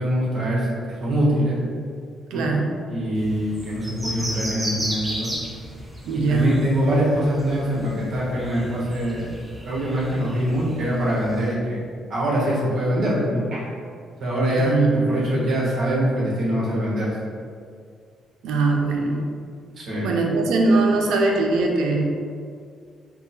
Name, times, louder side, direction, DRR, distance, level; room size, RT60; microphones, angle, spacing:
voice 1, 0.0-1.6 2.3-2.4 2.9-5.3 6.1-9.3 9.6-11.8 12.1-13.7 14.2-17.1 19.8-20.1, equal, 60° right, -6 dB, 1.2 m, -23 dB
voice 2, 2.3-2.7 6.1-6.5 14.6-15.0 18.4-19.2 20.0-22.0, right 3 dB, 85° right, 0 dB, 0.5 m, -21 dB
sound 1, 3.2-11.5, equal, 10° right, 0.7 m, -35 dB
3.6 x 2.1 x 4.0 m, 2.2 s
cardioid pair, 90°, 0 cm